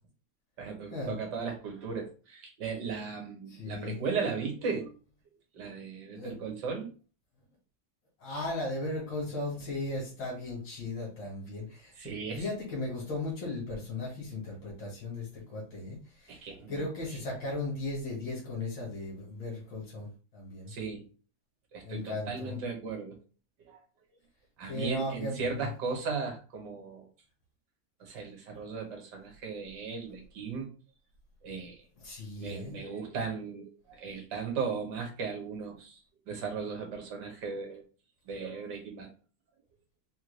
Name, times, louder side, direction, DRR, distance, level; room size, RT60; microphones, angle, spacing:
voice 1, 0.6-4.9 5.5-6.9 12.0-12.5 16.3-16.8 20.7-21.0 21.7-23.2 23.7-23.8 24.6-27.1 28.0-30.7 31.4-31.8 32.4-36.0 36.3-37.9 38.3-39.1, right 5 dB, 65° right, 1 dB, 1.6 m, -36 dB
voice 2, 3.5-4.0 6.1-6.3 8.2-11.9 12.3-20.7 21.8-22.6 24.7-25.7 32.0-32.8, left 2 dB, 85° left, -4 dB, 2.2 m, -37 dB
4.4 x 2.3 x 3.2 m, 0.36 s
omnidirectional pair, 2.0 m